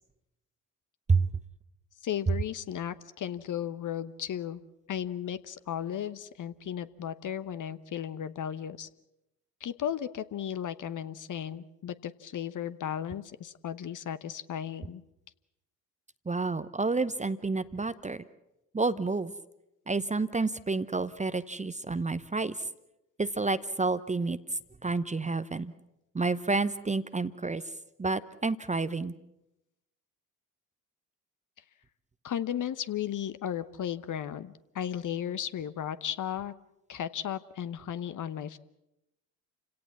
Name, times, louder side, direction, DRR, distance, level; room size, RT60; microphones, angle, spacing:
voice 1, 2.0-4.6 4.9-8.9 9.6-15.0 32.2-36.5 36.9-38.6, left 10 dB, 40° left, 13 dB, 1.1 m, -35 dB
voice 2, 16.3-18.2 18.7-19.3 19.9-22.6 23.2-24.4 24.8-25.7 26.1-27.6 28.0-29.1, right 3 dB, 15° right, 13 dB, 0.9 m, -29 dB
29.5 x 17.5 x 7.3 m, 0.90 s
figure-of-eight pair, 50°, 49 cm